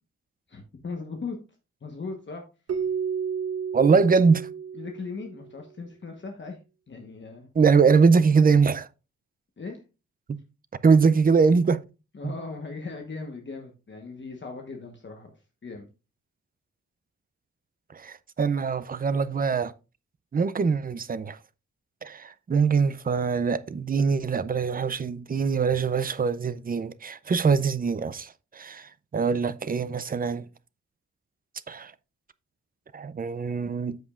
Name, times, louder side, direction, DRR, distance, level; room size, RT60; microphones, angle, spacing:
voice 1, 0.5-1.4 1.8-2.4 4.7-6.6 6.9-7.5 9.6-9.8 12.1-15.3 15.6-15.9, left 4 dB, 40° left, 1.2 m, -38 dB
Keyboard (musical), 2.7-5.5, right 7 dB, 55° right, 0.9 m, -31 dB
voice 2, 3.7-4.5 7.6-8.9 10.3-10.4 10.8-11.8 12.2-12.3 17.9-19.7 20.3-21.4 22.0-30.4 31.7-31.9 32.9-34.0, right 5 dB, 30° right, 0.4 m, -23 dB
13.5 x 5.2 x 2.4 m
wide cardioid pair, 155°, 30 cm